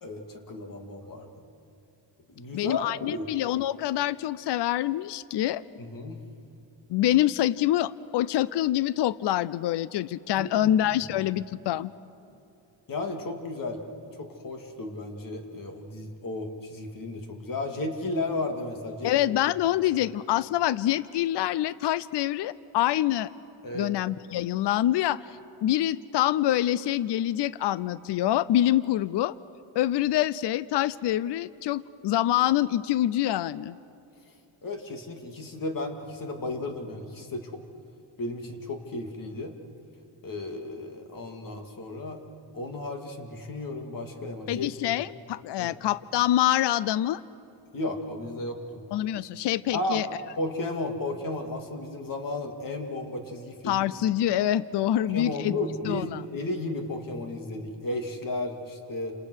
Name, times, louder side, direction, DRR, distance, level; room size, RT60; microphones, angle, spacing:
voice 1, 0.0-1.3 2.3-3.3 5.8-6.3 10.4-10.7 12.3-12.4 12.9-13.8 14.2-19.1 23.6-23.9 34.3-34.4 34.6-37.6 38.2-39.5 40.2-42.2 42.5-44.7 45.6-45.8 47.7-48.8 49.7-50.0 50.4-53.8 55.1-59.1, left 2 dB, 45° left, 4 dB, 2.6 m, -34 dB
voice 2, 2.5-5.6 6.9-11.9 19.0-23.3 23.7-25.2 25.6-29.4 29.7-33.8 44.5-47.2 48.9-50.1 53.7-55.5 55.8-56.2, left 13 dB, 65° left, 18 dB, 0.6 m, -26 dB
29.5 x 27.5 x 6.4 m, 2.6 s
cardioid pair, 150°, 45 cm